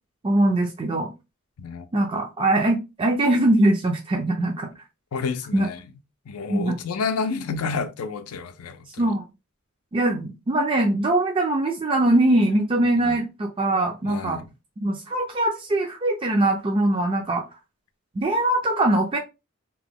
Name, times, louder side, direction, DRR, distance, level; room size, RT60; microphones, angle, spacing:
voice 1, 0.2-1.1 1.9-4.7 5.5-5.7 6.5-6.8 9.0-9.2 9.9-14.4 14.8-17.4 18.2-19.2, right 1 dB, 25° right, 0.4 m, -22 dB
voice 2, 5.1-5.8 6.3-9.0 13.0-13.2 14.0-14.4, left 5 dB, 85° left, 0.4 m, -30 dB
2.9 x 2.1 x 3.4 m
head